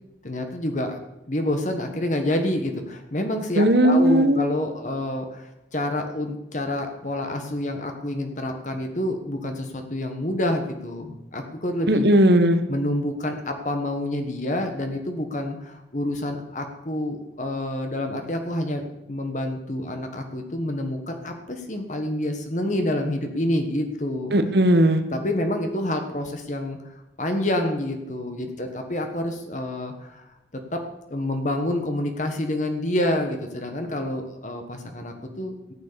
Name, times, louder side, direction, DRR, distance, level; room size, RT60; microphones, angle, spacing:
voice 1, 0.2-1.0 1.3-12.1 12.7-24.3 25.1-30.3 30.5-30.8 31.1-35.7, left 1 dB, 45° left, 5 dB, 1.4 m, -28 dB
voice 2, 3.6-4.4 11.9-12.6 24.3-25.0, right 1 dB, 65° right, 8 dB, 1.5 m, -17 dB
14.0 x 9.4 x 6.9 m, 0.97 s
head